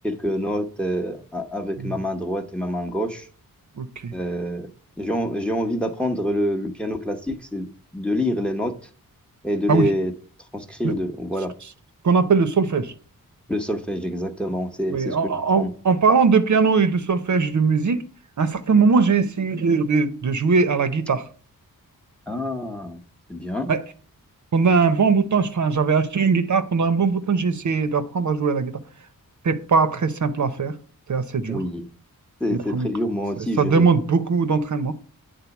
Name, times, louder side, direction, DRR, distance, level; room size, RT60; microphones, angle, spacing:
voice 1, 0.0-3.3 4.1-4.7 5.0-7.7 7.9-8.7 9.4-10.1 10.5-11.5 13.5-15.7 22.3-23.0 23.3-23.7 31.5-31.9 32.4-33.9, equal, 5° left, 0.9 m, -26 dB
voice 2, 3.8-4.1 9.7-9.9 10.8-10.9 12.0-12.9 14.9-18.0 18.4-21.2 23.7-23.8 24.5-28.8 29.4-30.7 31.1-31.6 32.5-32.9 33.4-34.9, right 5 dB, 55° right, 0.8 m, -20 dB
9.4 x 3.9 x 7.0 m
wide cardioid pair, 120°, 35 cm